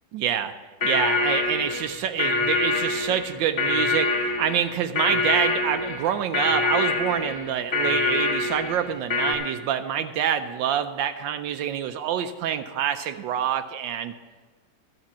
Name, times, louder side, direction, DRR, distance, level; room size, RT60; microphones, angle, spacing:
voice 1, 0.1-0.5 0.8-14.1, right 9 dB, 80° right, 9 dB, 1.3 m, -26 dB
sound 1, 0.8-9.3, left 3 dB, 35° left, 1.6 m, -25 dB
12.5 x 6.6 x 7.2 m, 1.3 s
omnidirectional pair, 2.0 m